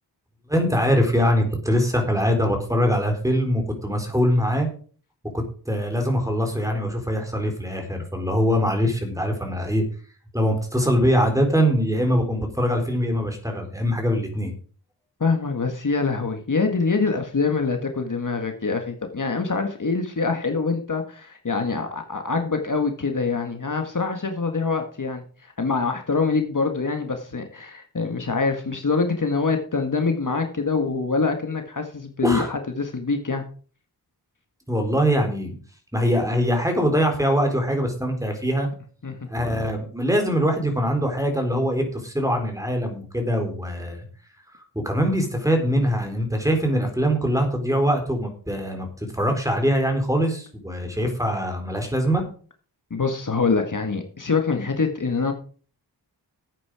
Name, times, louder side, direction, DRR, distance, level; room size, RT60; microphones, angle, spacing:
voice 1, 0.5-4.7 5.3-9.8 10.3-14.5 32.2-32.5 34.7-35.6 35.9-38.7 39.3-44.0 44.8-48.9 49.1-52.2, equal, 10° right, 4 dB, 4.0 m, -23 dB
voice 2, 15.2-33.4 39.0-39.2 52.9-55.3, left 4 dB, 45° left, 5 dB, 1.8 m, -25 dB
12.5 x 8.7 x 4.9 m, 0.42 s
wide cardioid pair, 75°, 42 cm